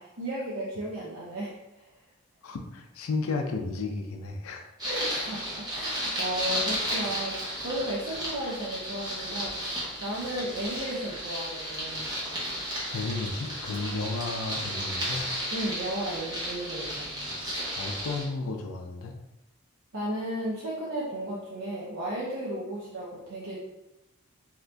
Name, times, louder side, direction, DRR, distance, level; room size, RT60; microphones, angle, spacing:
voice 1, 0.0-1.9 4.8-12.1 15.5-17.1 19.9-23.6, right 1 dB, 75° right, -6 dB, 0.6 m, -34 dB
voice 2, 2.4-4.7 12.9-15.2 17.8-19.1, left 3 dB, 80° left, 4 dB, 0.4 m, -33 dB
sound 1, 4.8-18.3, equal, 20° right, 0.8 m, -33 dB
2.8 x 2.6 x 3.3 m, 0.96 s
head